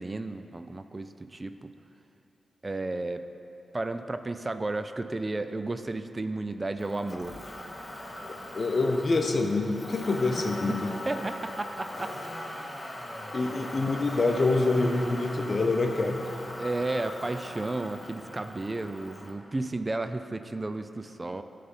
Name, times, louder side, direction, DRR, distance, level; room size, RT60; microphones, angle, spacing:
voice 1, 0.0-1.7 2.6-3.2 3.7-7.4 11.1-12.1 13.9-14.0 16.6-21.4, right 2 dB, 35° right, 9 dB, 0.3 m, -33 dB
Motor vehicle (road), 6.8-19.3, left 1 dB, 30° left, 1.1 m, -40 dB
voice 2, 8.5-10.9 13.3-16.2, left 3 dB, 55° left, 4 dB, 0.6 m, -26 dB
9.5 x 3.4 x 5.4 m, 2.8 s
cardioid pair, 45°, 0 cm